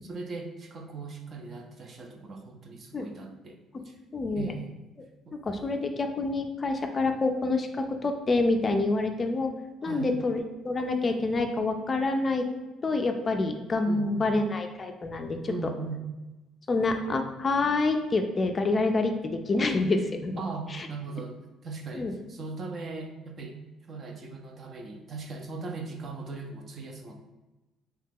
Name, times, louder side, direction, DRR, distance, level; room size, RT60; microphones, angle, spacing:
voice 1, 0.0-3.6 3.8-3.9 4.4-4.7 5.3-5.4 9.8-10.2 13.9-14.2 15.5-16.1 20.4-23.6 23.9-27.1, right 4 dB, 40° right, 4 dB, 0.5 m, -39 dB
voice 2, 4.1-4.5 5.3-9.5 9.8-12.5 12.8-15.5 16.7-20.4 20.7-20.9 22.0-22.1, left 3 dB, 30° left, 5 dB, 0.3 m, -27 dB
2.9 x 2.8 x 3.6 m, 1.1 s
cardioid pair, 115°, 0 cm